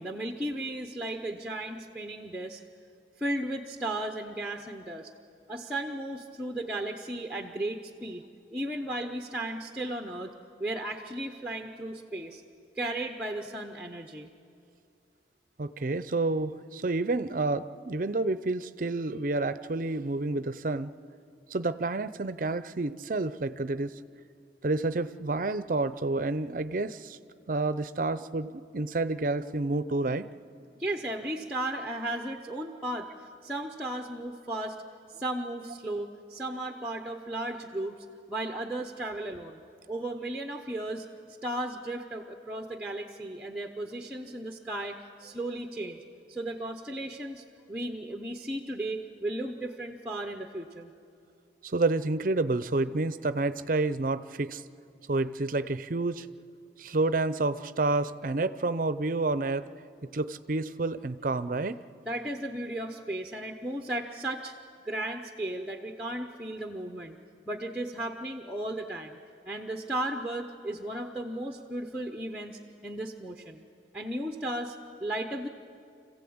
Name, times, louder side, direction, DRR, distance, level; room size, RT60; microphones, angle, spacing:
voice 1, 0.0-2.6 3.2-5.1 5.5-8.2 8.5-10.3 10.6-12.4 12.8-14.3 30.8-34.8 35.1-39.6 39.9-41.1 41.4-46.0 46.3-50.9 62.1-64.5 64.8-67.2 67.5-69.2 69.5-73.6 73.9-74.8 75.0-75.5, right 1 dB, 5° right, 3 dB, 0.8 m, -35 dB
voice 2, 15.6-20.9 21.5-24.0 24.6-27.2 27.5-30.3 51.6-54.6 55.1-56.3 56.8-59.7 60.1-61.8, right 2 dB, 45° right, 14 dB, 0.6 m, -29 dB
26.0 x 15.5 x 8.6 m, 2.5 s
head